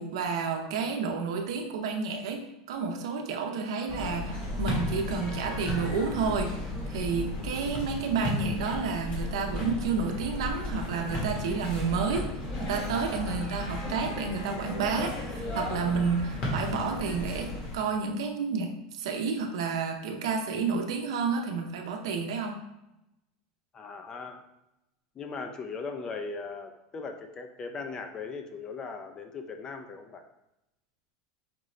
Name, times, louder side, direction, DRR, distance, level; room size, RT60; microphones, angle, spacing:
voice 1, 0.0-12.3 12.6-22.6, right 5 dB, 85° right, 3 dB, 0.7 m, -30 dB
sound 1, 3.9-17.8, left 2 dB, 40° left, 1.3 m, -34 dB
voice 2, 23.7-24.4 25.2-30.2, left 4 dB, 25° left, 5 dB, 0.5 m, -38 dB
5.2 x 2.6 x 3.1 m, 0.89 s
supercardioid pair, 145°, 3 cm